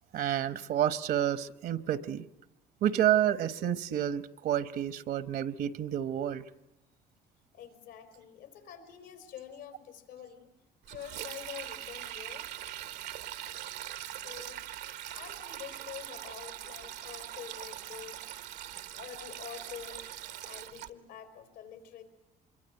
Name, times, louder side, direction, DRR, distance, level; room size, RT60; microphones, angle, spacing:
voice 1, 0.1-2.2 2.8-6.4, right 11 dB, 65° right, 1.1 m, -29 dB
voice 2, 7.5-10.5 10.9-12.5 14.1-14.6 15.1-18.4 18.9-20.1 20.4-22.0, left 9 dB, 90° left, 4.7 m, -47 dB
Sink (filling or washing), 10.8-20.9, right 12 dB, 85° right, 1.2 m, -42 dB
25.5 x 23.0 x 9.1 m
cardioid pair, 110°, 17 cm